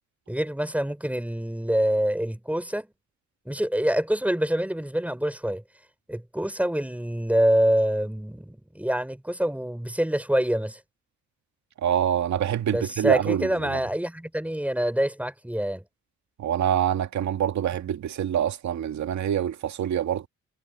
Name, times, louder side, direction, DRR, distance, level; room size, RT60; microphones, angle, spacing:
voice 1, 0.3-2.9 3.4-5.6 6.1-10.8 12.7-15.8, equal, 5° right, 5.1 m, -26 dB
voice 2, 11.8-13.8 16.4-20.3, right 10 dB, 65° right, 2.4 m, -26 dB
cardioid pair, 90°, 30 cm